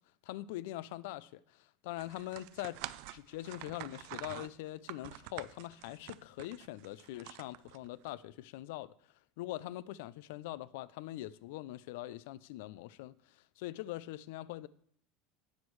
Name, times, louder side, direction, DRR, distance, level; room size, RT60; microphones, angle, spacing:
voice 1, 0.3-2.8 3.1-8.9 9.4-13.1 13.6-14.7, left 16 dB, 75° left, 0.4 m, -43 dB
sound 1, 2.0-8.1, right 16 dB, 65° right, 0.4 m, -47 dB
17.5 x 6.3 x 3.1 m
cardioid pair, 155°, 0 cm